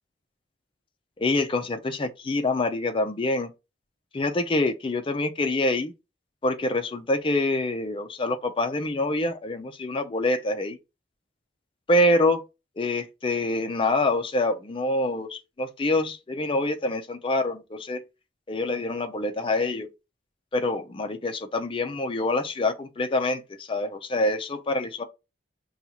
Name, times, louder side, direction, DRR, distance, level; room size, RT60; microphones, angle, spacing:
voice 1, 1.2-3.5 4.1-5.9 6.4-10.8 11.9-12.4 12.8-18.0 18.5-19.9 20.5-25.0, left 2 dB, 30° left, 0.5 m, -26 dB
5.3 x 2.3 x 2.9 m
head